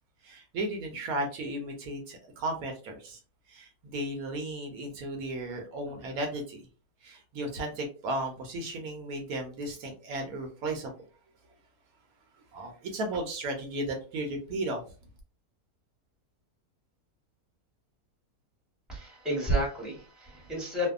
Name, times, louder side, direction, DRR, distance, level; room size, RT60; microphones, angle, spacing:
voice 1, 0.2-3.2 3.5-6.7 7.0-10.9 12.5-14.8, right 1 dB, 75° right, 3 dB, 1.1 m, -35 dB
voice 2, 18.9-20.9, equal, ahead, -3 dB, 1.0 m, -30 dB
2.7 x 2.2 x 2.3 m, 0.36 s
omnidirectional pair, 1.6 m